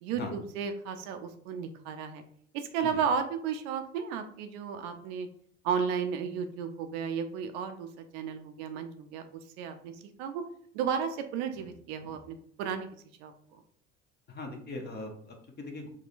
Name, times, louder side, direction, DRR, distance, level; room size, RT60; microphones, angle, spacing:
voice 1, 0.0-2.2 2.5-5.3 5.6-7.9 8.1-9.2 9.6-9.9 10.2-10.4 10.7-12.9 13.2-13.3, right 7 dB, 60° right, 7 dB, 0.5 m, -33 dB
voice 2, 14.3-15.9, left 2 dB, 25° left, 3 dB, 0.7 m, -40 dB
3.6 x 2.1 x 2.5 m, 0.63 s
hypercardioid pair, 70°, 38 cm